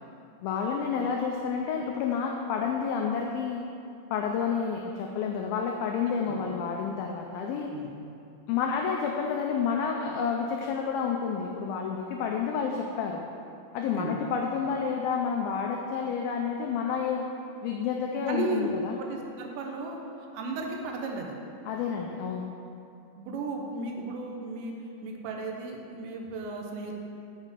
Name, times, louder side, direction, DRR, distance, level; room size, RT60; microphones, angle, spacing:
voice 1, 0.4-3.6 4.1-7.7 8.5-13.3 13.7-17.3 17.6-19.0 21.7-22.5, left 6 dB, 85° left, 1 dB, 2.1 m, -29 dB
voice 2, 18.3-20.0 20.3-21.4 23.2-24.7 25.0-26.9, right 2 dB, 80° right, 1 dB, 3.2 m, -34 dB
8.2 x 6.6 x 7.4 m, 2.6 s
omnidirectional pair, 5.0 m